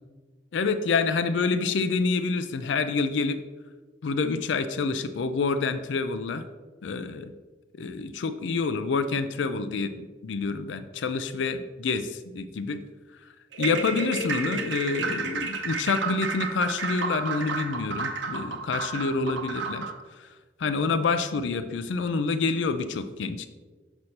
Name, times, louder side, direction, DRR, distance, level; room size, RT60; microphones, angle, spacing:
voice 1, 0.5-3.4 4.0-6.4 6.8-7.3 7.8-12.8 13.6-19.9 20.2-20.3 20.6-23.5, left 4 dB, 80° left, 11 dB, 0.4 m, -27 dB
sound 1, 13.5-20.0, right 4 dB, 85° right, 0.8 m, -31 dB
6.4 x 6.1 x 2.8 m, 1.3 s
head